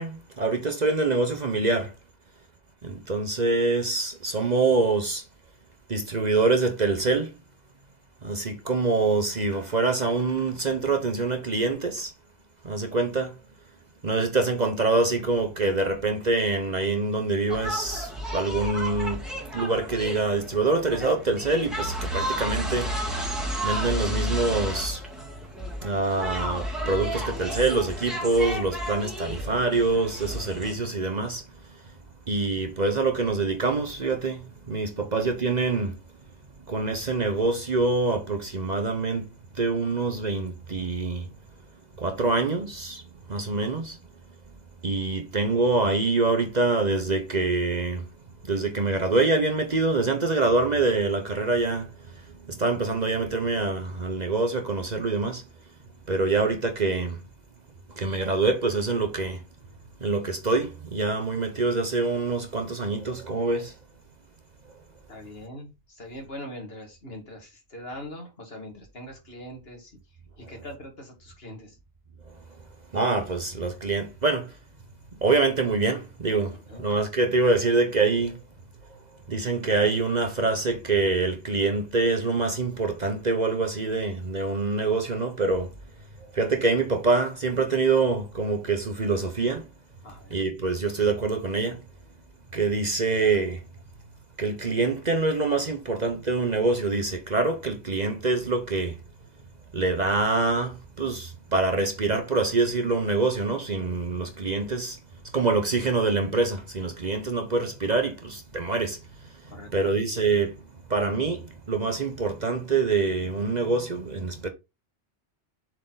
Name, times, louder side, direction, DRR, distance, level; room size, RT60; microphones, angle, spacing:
voice 1, 0.0-1.9 2.8-5.2 5.9-7.3 8.2-12.1 12.6-13.4 14.0-19.2 19.5-22.9 23.6-25.0 25.8-31.8 32.3-35.9 36.7-41.3 42.0-43.0 43.3-44.0 44.8-48.1 48.4-55.4 56.1-57.2 57.9-59.4 60.0-63.7 72.3-72.4 72.9-74.6 75.2-78.4 79.3-85.7 86.3-89.7 90.3-91.8 92.5-93.6 94.4-99.0 99.7-105.0 105.3-110.6 110.9-114.5, right 3 dB, 40° right, 1.0 m, -25 dB
sound 1, 17.5-30.7, equal, ahead, 2.0 m, -32 dB
voice 2, 65.1-70.0 70.4-71.8 76.7-76.9 90.0-90.4 109.5-109.9, left 1 dB, 60° left, 2.5 m, -42 dB
7.3 x 4.6 x 3.9 m
omnidirectional pair, 1.2 m